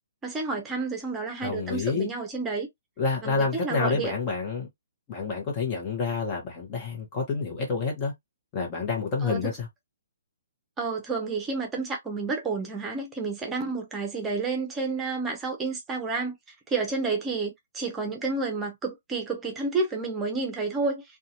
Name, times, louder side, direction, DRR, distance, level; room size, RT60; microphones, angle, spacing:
voice 1, 0.2-2.7 3.2-4.1 9.2-9.5 10.8-16.4 16.7-21.0, right 4 dB, 15° right, 0.8 m, -30 dB
voice 2, 1.4-2.1 3.0-4.7 5.1-8.1 8.5-9.7, left 4 dB, 30° left, 1.0 m, -28 dB
2.6 x 2.4 x 2.8 m
hypercardioid pair, 135°, 0 cm